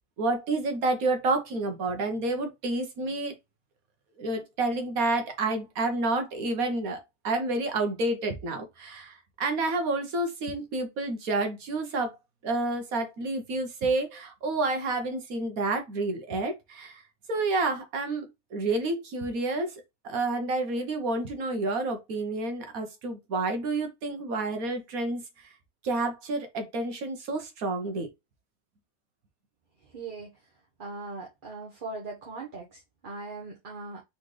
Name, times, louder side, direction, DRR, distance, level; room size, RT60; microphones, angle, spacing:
voice 1, 0.2-3.4 4.2-12.2 12.4-17.0 17.3-19.7 20.0-25.2 25.8-28.1, right 2 dB, 65° right, 1.5 m, -29 dB
voice 2, 29.9-30.3 30.8-34.0, right 3 dB, 35° right, 1.1 m, -40 dB
4.0 x 3.9 x 3.2 m
omnidirectional pair, 1.7 m